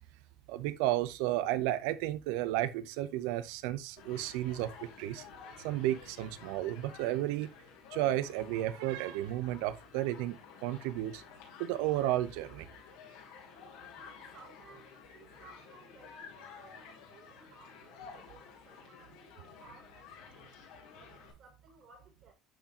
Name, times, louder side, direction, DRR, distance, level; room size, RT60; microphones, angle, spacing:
voice 1, 0.5-5.3 5.6-7.5 7.9-11.2 11.6-12.7, right 14 dB, 80° right, 0.6 m, -33 dB
Human group actions, 4.0-21.3, left 6 dB, 80° left, 2.9 m, -52 dB
voice 2, 14.0-20.6 21.0-22.3, right 3 dB, 55° right, 4.2 m, -59 dB
11.5 x 4.4 x 2.8 m
supercardioid pair, 100°, 0 cm